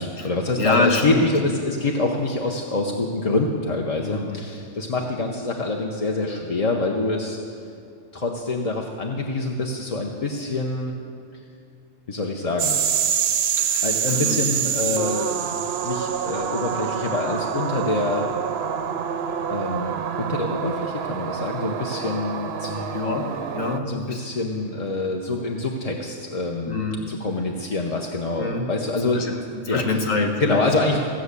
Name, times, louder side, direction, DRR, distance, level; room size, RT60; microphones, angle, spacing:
voice 1, 0.0-7.4 8.1-10.9 12.1-12.8 13.8-15.4 15.8-18.3 19.5-22.8 23.8-26.8 27.1-29.4 29.7-29.8 30.4-31.0, left 2 dB, 35° left, 0 dB, 0.7 m, -26 dB
voice 2, 0.6-1.3 4.0-4.4 13.6-14.4 22.7-23.3 23.5-24.2 26.7-27.0 28.4-28.6 29.1-29.4 29.6-30.7, left 3 dB, 85° left, 2 dB, 1.7 m, -26 dB
sound 1, 12.6-23.8, right 8 dB, 60° right, 0.8 m, -26 dB
15.5 x 6.4 x 8.2 m, 2.5 s
omnidirectional pair, 1.3 m